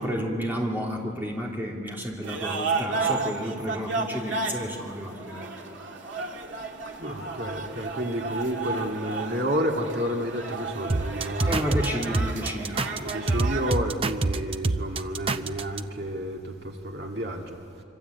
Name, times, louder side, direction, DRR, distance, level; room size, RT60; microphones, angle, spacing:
voice 1, 0.0-5.5 11.5-12.8, equal, 10° right, -2 dB, 3.0 m, -31 dB
sound 1, 2.2-13.7, right 3 dB, 85° right, 2.1 m, -33 dB
voice 2, 7.0-11.6 13.0-17.6, equal, 60° right, 1 dB, 2.3 m, -30 dB
sound 2, 10.9-15.8, right 2 dB, 30° right, 0.6 m, -26 dB
26.0 x 25.0 x 8.3 m, 2.3 s
head